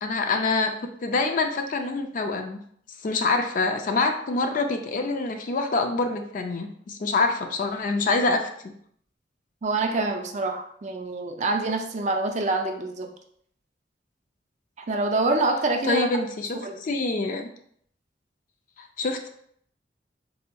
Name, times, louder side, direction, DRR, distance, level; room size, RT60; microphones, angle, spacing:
voice 1, 0.0-2.6 3.0-8.7 15.8-16.5 16.8-17.5 18.8-19.3, left 3 dB, 50° left, 6 dB, 0.4 m, -26 dB
voice 2, 9.6-13.1 14.8-16.1 16.6-16.8, right 3 dB, 40° right, 4 dB, 0.4 m, -26 dB
4.2 x 2.7 x 2.2 m, 0.65 s
head